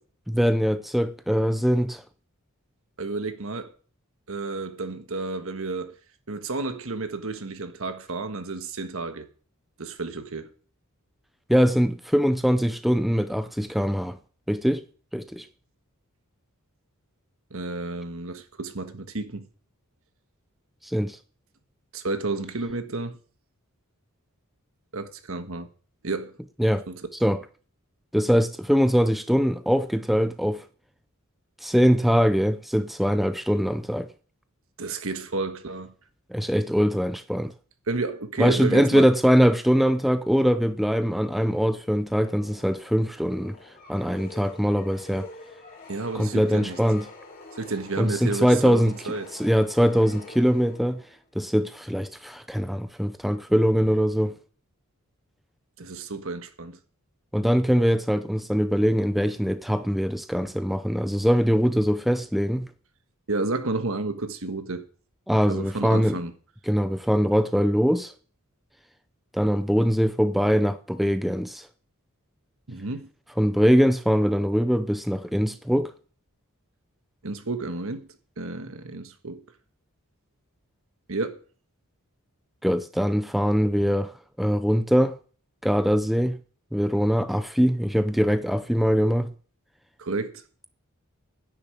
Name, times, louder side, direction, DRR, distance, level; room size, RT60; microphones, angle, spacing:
voice 1, 0.3-2.0 11.5-14.2 14.5-14.8 15.1-15.5 20.8-21.2 26.6-26.8 27.2-27.4 28.1-30.6 31.6-34.1 36.3-37.5 38.4-43.6 43.9-45.3 46.1-47.1 48.0-48.9 49.3-51.0 51.4-54.3 57.3-62.7 65.3-66.2 66.7-68.1 69.3-71.7 73.4-75.9 82.6-85.2 85.6-86.4 86.7-89.3, equal, ahead, 0.5 m, -22 dB
voice 2, 3.0-3.7 4.3-6.0 6.3-9.3 9.8-10.5 17.5-19.5 21.9-23.2 24.9-25.7 26.0-26.3 26.9-27.0 34.8-35.9 37.9-39.1 45.9-46.8 47.6-49.3 55.8-56.8 63.3-64.9 65.5-66.3 72.7-73.1 77.2-78.1 78.4-79.4 81.1-81.4 90.0-90.4, right 3 dB, 65° right, 1.5 m, -31 dB
sound 1, 42.1-51.2, left 3 dB, 40° left, 2.9 m, -46 dB
10.0 x 7.1 x 8.3 m
head